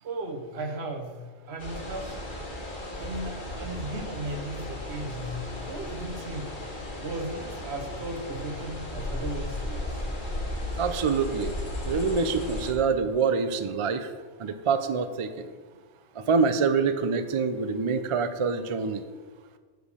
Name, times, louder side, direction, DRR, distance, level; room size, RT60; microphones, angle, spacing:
voice 1, 0.0-1.2 1.5-2.2 3.0-6.5 7.0-10.0, right 1 dB, 70° right, 5 dB, 1.2 m, -36 dB
sound 1, 1.6-12.7, left 1 dB, 50° left, 1.6 m, -35 dB
voice 2, 10.8-11.5 11.9-14.1 14.4-15.3 16.2-19.0, right 5 dB, 50° right, 10 dB, 0.4 m, -26 dB
7.8 x 5.0 x 6.7 m, 1.5 s
omnidirectional pair, 1.1 m